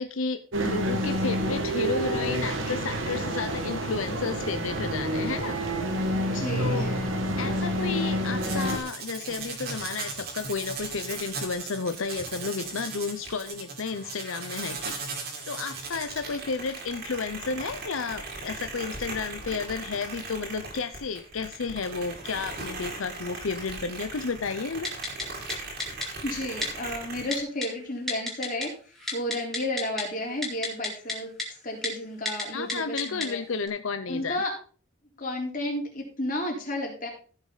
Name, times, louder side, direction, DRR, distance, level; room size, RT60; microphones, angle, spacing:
voice 1, 0.0-5.6 6.6-7.0 7.4-24.9 32.5-34.4, left 4 dB, 90° left, 10 dB, 0.7 m, -32 dB
sound 1, 0.5-8.8, right 1 dB, 80° right, 1.9 m, -28 dB
voice 2, 6.2-7.0 26.2-28.7 29.1-33.4 34.1-34.6 35.2-37.1, left 1 dB, 40° left, -1 dB, 3.7 m, -32 dB
sound 2, 8.4-27.4, right 3 dB, 50° right, 2.9 m, -38 dB
Typing, 24.8-25.2 25.5-25.6 25.8-26.1 26.6-26.7 27.3-27.7 28.1-28.7 28.9-30.0 30.4-31.1 31.4-31.5 31.8-31.9 32.2-32.4 32.7-33.3 33.7-33.8, left 2 dB, ahead, 2.4 m, -30 dB
15.0 x 6.3 x 4.0 m, 0.41 s
head